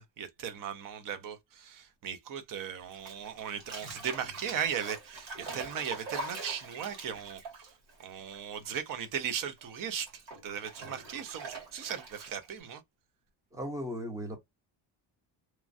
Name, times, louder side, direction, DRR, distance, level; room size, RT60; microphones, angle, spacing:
voice 1, 0.0-7.7 8.0-12.8, right 8 dB, 45° right, 0.6 m, -37 dB
Bathtub (filling or washing), 2.9-8.8 9.0-12.6, right 3 dB, 85° right, 1.8 m, -44 dB
voice 2, 13.5-14.4, equal, 5° right, 0.7 m, -36 dB
3.0 x 2.3 x 2.5 m
cardioid pair, 150°, 47 cm